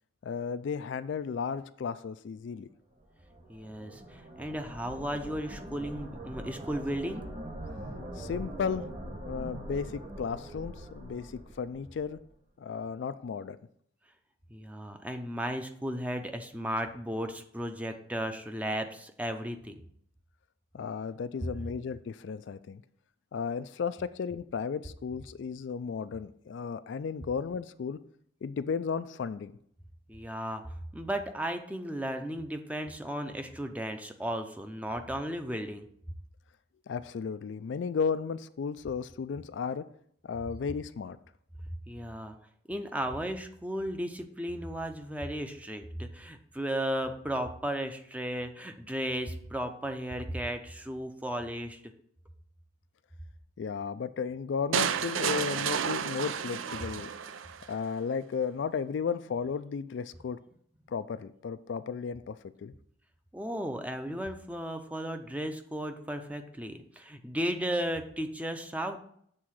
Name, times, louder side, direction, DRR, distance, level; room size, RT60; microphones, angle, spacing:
voice 1, 0.2-2.7 8.1-8.9 9.3-12.2 12.6-13.6 20.7-22.8 23.3-28.0 28.4-29.5 36.9-39.8 40.2-41.2 53.6-57.1 57.7-60.4 60.9-62.4 62.6-62.7, left 6 dB, 65° left, 13 dB, 0.3 m, -34 dB
sound 1, 3.0-12.2, right 1 dB, 35° right, 1.6 m, -42 dB
voice 2, 3.5-7.2 14.5-19.8 30.1-30.6 30.9-35.9 41.9-42.4 42.7-51.8 63.3-69.0, equal, 5° right, 6 dB, 0.6 m, -35 dB
sound 2, 54.7-57.7, right 7 dB, 90° right, 0.5 m, -31 dB
7.6 x 3.6 x 6.2 m, 0.66 s
head